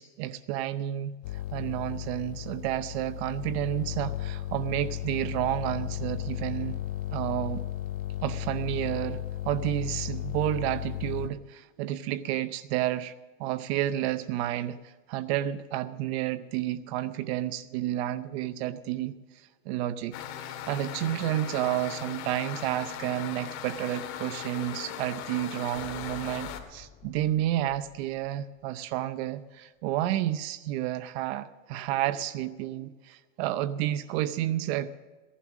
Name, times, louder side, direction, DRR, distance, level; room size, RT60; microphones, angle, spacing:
voice 1, 0.0-6.8 7.1-7.6 8.2-13.1 13.4-20.2 20.5-35.0, right 13 dB, 55° right, 14 dB, 0.7 m, -31 dB
sound 1, 1.2-11.3, left 12 dB, 80° left, 0.7 m, -35 dB
sound 2, 20.1-26.6, left 10 dB, 45° left, 2.0 m, -39 dB
sound 3, 25.7-29.2, left 9 dB, 15° left, 0.5 m, -50 dB
16.5 x 11.5 x 6.1 m, 1.3 s
supercardioid pair, 145°, 39 cm